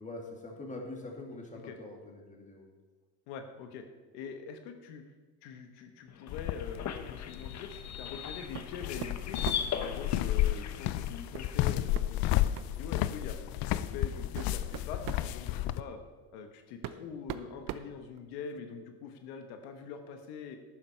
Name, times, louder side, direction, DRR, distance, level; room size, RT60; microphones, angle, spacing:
voice 1, 0.0-2.7, left 2 dB, 20° left, 1 dB, 2.6 m, -43 dB
voice 2, 3.3-3.9 4.1-5.0 5.4-9.4 9.7-13.4 13.7-16.0 16.3-20.6, left 6 dB, 90° left, 6 dB, 1.2 m, -44 dB
sound 1, 6.1-11.6, left 8 dB, 45° left, 1.0 m, -40 dB
sound 2, 6.3-15.8, left 14 dB, 65° left, 0.6 m, -32 dB
sound 3, 8.5-8.7 9.0-9.8 11.3-11.5 11.9-12.1 12.5-12.8 13.6-13.7 14.2-15.3 16.3-16.4 16.8-18.6, right 11 dB, 60° right, 0.8 m, -41 dB
12.0 x 9.5 x 4.5 m, 1.4 s
cardioid pair, 110°, 38 cm